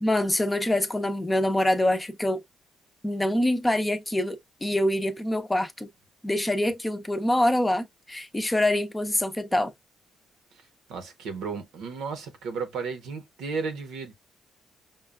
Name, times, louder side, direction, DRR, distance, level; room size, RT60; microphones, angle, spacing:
voice 1, 0.0-2.4 3.0-5.9 6.2-9.7, left 1 dB, 15° left, 0.6 m, -25 dB
voice 2, 10.9-14.1, right 5 dB, 85° right, 0.9 m, -34 dB
5.4 x 2.3 x 2.2 m
cardioid pair, 90°, 0 cm